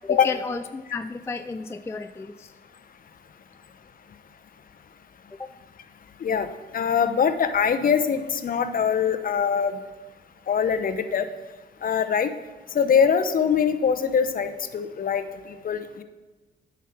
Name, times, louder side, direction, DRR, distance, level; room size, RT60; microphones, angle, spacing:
voice 1, 0.0-2.5 5.4-5.5, left 4 dB, 15° left, 9 dB, 0.3 m, -32 dB
voice 2, 6.7-9.8 10.5-11.3 11.8-12.3 12.7-16.0, left 7 dB, 45° left, 10 dB, 0.8 m, -23 dB
9.1 x 5.9 x 6.3 m, 1.2 s
cardioid pair, 90°, 20 cm